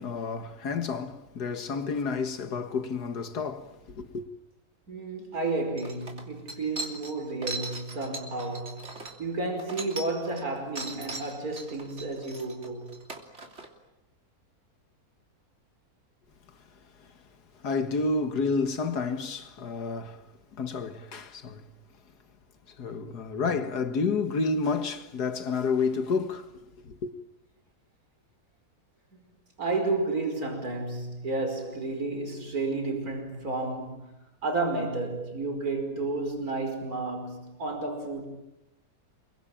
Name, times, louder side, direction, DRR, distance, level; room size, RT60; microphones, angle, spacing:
voice 1, 0.0-4.3 17.6-20.2 20.6-21.6 22.8-27.1, left 4 dB, 90° left, 2.2 m, -30 dB
voice 2, 4.9-12.9 29.1-29.3 29.6-34.1 34.4-38.2, right 3 dB, 65° right, 5.7 m, -32 dB
sound 1, 5.3-5.4 5.8-10.4 10.8-13.7, right 2 dB, 45° right, 3.4 m, -39 dB
27.5 x 23.0 x 8.9 m
omnidirectional pair, 1.7 m